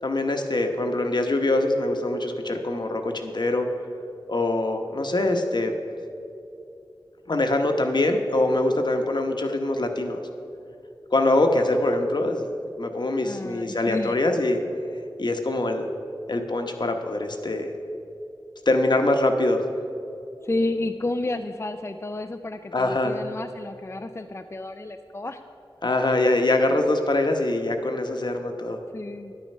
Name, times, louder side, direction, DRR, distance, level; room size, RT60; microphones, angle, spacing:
voice 1, 0.0-3.7 4.3-5.8 7.3-10.2 11.1-12.5 12.8-14.6 15.2-15.9 16.3-17.7 18.7-19.6 22.7-23.2 25.8-28.8, left 2 dB, 60° left, 5 dB, 1.0 m, -23 dB
voice 2, 13.2-14.2 20.4-25.4 28.9-29.3, left 2 dB, 30° left, 7 dB, 0.4 m, -31 dB
10.0 x 9.2 x 5.4 m, 2.7 s
wide cardioid pair, 60°, 9 cm